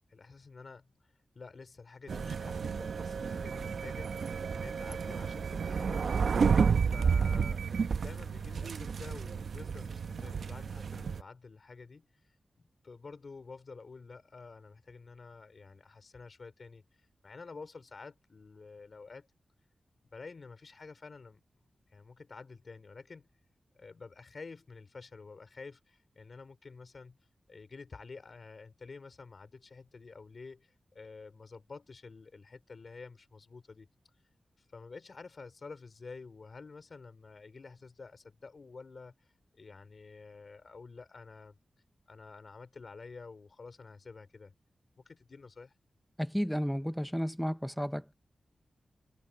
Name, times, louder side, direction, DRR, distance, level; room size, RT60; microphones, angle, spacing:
voice 1, 0.1-0.9 1.3-6.5 6.9-12.1 12.6-16.8 17.2-19.3 20.1-21.4 21.9-23.3 23.7-27.2 27.5-33.9 34.7-39.1 39.6-41.6 42.1-44.5 45.1-45.7, left 4 dB, 45° left, 4.2 m, -49 dB
Tube - northern line, 2.1-11.2, right 6 dB, 75° right, 0.8 m, -31 dB
voice 2, 46.2-48.1, equal, ahead, 0.5 m, -32 dB
wide cardioid pair, 165°, 0 cm